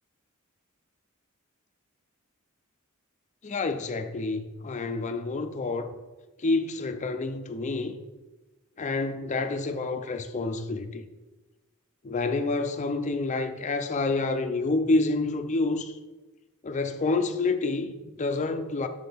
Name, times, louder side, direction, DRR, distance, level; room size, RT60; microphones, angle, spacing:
voice 1, 3.4-5.9 6.4-8.0 8.8-11.0 12.0-15.9 16.6-18.9, left 3 dB, 35° left, 0.5 m, -28 dB
6.7 x 6.1 x 3.5 m
head